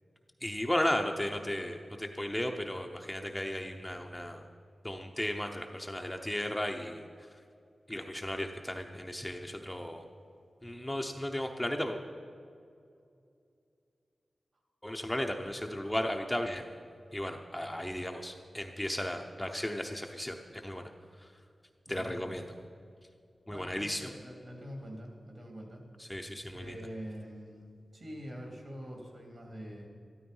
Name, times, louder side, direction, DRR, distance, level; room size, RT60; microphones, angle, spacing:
voice 1, 0.4-4.4 4.8-7.0 7.9-10.0 10.6-12.0 14.8-16.7 17.1-20.4 20.6-20.8 21.2-21.3 21.9-22.4 23.5-24.1 26.0-26.7, left 1 dB, 10° left, 3 dB, 0.8 m, -35 dB
voice 2, 21.9-22.3 23.5-25.8 26.5-29.9, equal, 50° right, 0 dB, 3.6 m, -45 dB
13.5 x 12.5 x 5.5 m, 2.4 s
wide cardioid pair, 110°, 0 cm